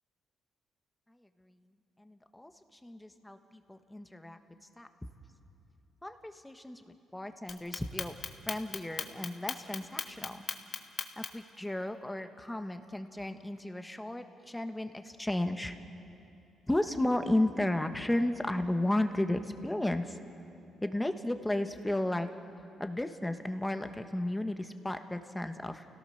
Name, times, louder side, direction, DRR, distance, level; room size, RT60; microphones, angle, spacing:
voice 1, 1.1-1.5 2.0-4.4 4.8-4.9 6.0-8.1 8.5-10.4 11.2-15.8 16.7-20.2 20.8-22.3 22.8-25.9, left 1 dB, 10° left, 7 dB, 1.4 m, -34 dB
Clock, 7.5-11.5, left 7 dB, 60° left, 1.3 m, -37 dB
29.5 x 17.0 x 6.5 m, 2.7 s
cardioid pair, 90°, 0 cm